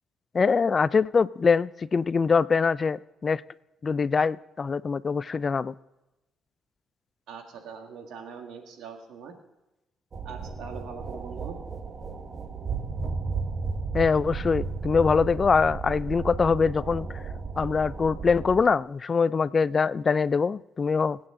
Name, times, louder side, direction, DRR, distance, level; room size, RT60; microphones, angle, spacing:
voice 1, 0.3-3.4 3.8-5.7 13.9-17.1 17.6-21.2, left 5 dB, 40° left, 19 dB, 0.4 m, -23 dB
voice 2, 7.3-9.3 10.2-11.6, right 6 dB, 85° right, 4 dB, 1.9 m, -42 dB
sound 1, 10.1-18.6, right 4 dB, 40° right, 1.4 m, -34 dB
23.0 x 8.8 x 3.8 m, 0.99 s
cardioid pair, 90°, 0 cm